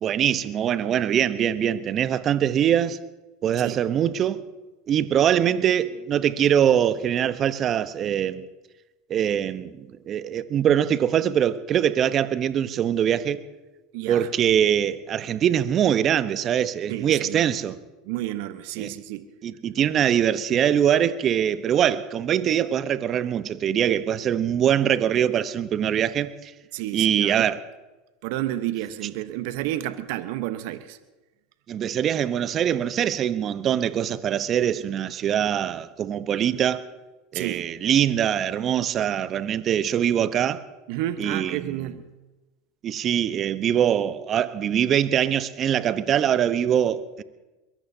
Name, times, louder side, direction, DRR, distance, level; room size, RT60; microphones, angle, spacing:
voice 1, 0.0-3.0 3.4-4.4 4.9-8.4 9.1-13.4 14.1-17.8 18.8-18.9 19.4-26.5 26.9-27.6 31.7-36.8 37.3-40.6 41.2-41.9 42.8-47.2, right 9 dB, 40° right, 0.9 m, -23 dB
voice 2, 13.9-14.3 16.9-17.5 18.0-19.2 26.7-27.5 28.2-31.0 37.3-37.7 40.9-42.0, right 14 dB, 65° right, 1.0 m, -31 dB
22.5 x 22.5 x 2.8 m
hypercardioid pair, 85°, 0 cm